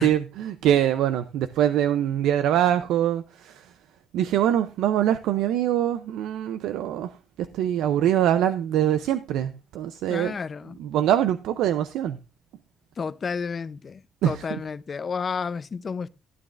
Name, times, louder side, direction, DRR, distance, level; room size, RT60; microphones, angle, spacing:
voice 1, 0.0-3.6 4.1-7.1 7.4-10.3 10.8-12.2 14.2-14.4, right 11 dB, 90° right, 0.5 m, -23 dB
voice 2, 10.1-10.8 13.0-16.1, left 5 dB, 40° left, 0.6 m, -31 dB
15.0 x 9.4 x 2.5 m
cardioid pair, 90°, 0 cm